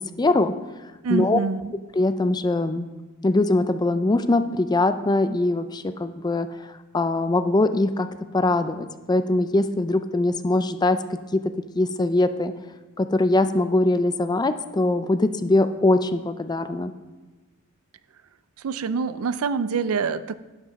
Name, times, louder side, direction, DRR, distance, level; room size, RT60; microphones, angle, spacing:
voice 1, 0.2-0.5 1.1-1.4 1.9-2.9 3.2-6.5 6.9-8.1 8.3-11.0 11.3-11.4 11.8-12.5 13.0-16.9, left 2 dB, 20° left, 11 dB, 0.4 m, -22 dB
voice 2, 1.0-1.7 18.6-20.4, right 5 dB, 75° right, 15 dB, 0.4 m, -25 dB
10.5 x 7.8 x 4.1 m, 1.2 s
head